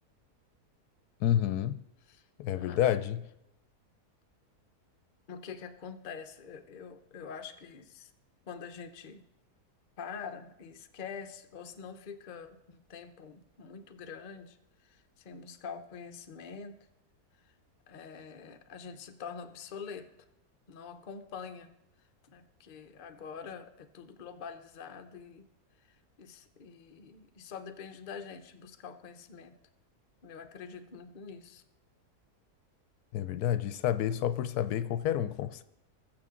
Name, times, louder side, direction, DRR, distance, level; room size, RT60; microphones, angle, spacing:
voice 1, 1.2-1.8 2.4-3.2 33.1-35.6, left 11 dB, 75° left, 1.1 m, -29 dB
voice 2, 5.3-8.1 8.5-9.3 10.0-14.6 14.8-16.9 17.9-20.1 20.7-21.8 22.2-25.5 26.2-29.6 30.2-31.6, left 6 dB, 45° left, 0.6 m, -45 dB
20.5 x 6.9 x 3.7 m
omnidirectional pair, 1.7 m